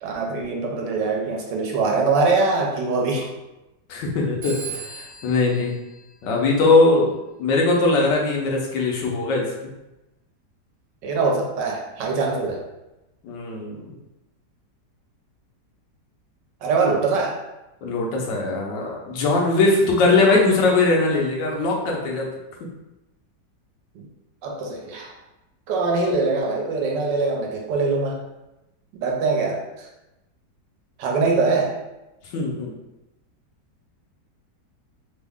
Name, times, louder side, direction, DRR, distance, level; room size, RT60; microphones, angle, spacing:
voice 1, 0.0-3.3 11.0-12.6 16.6-17.4 23.9-24.1 24.4-25.1 25.7-28.2 29.0-29.9 31.0-31.8, right 3 dB, 80° right, 0 dB, 1.3 m, -23 dB
voice 2, 3.9-5.7 6.2-7.1 7.4-9.7 13.2-13.8 17.8-22.3 32.3-32.7, left 3 dB, 80° left, -1 dB, 1.3 m, -20 dB
Telephone, 4.4-6.9, right 5 dB, 60° right, 1.4 m, -39 dB
3.6 x 2.0 x 3.4 m, 0.97 s
omnidirectional pair, 1.9 m